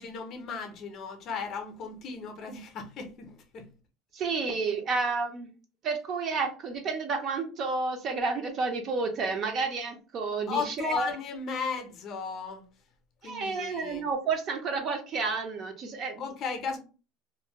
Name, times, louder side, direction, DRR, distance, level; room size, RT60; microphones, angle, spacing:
voice 1, 0.0-3.7 10.5-12.7 13.2-14.1 16.2-16.8, left 5 dB, 40° left, 0.5 m, -35 dB
voice 2, 4.1-5.5 5.8-11.1 13.2-16.3, right 4 dB, 35° right, 0.4 m, -30 dB
2.4 x 2.1 x 2.8 m
cardioid pair, 155°, 0 cm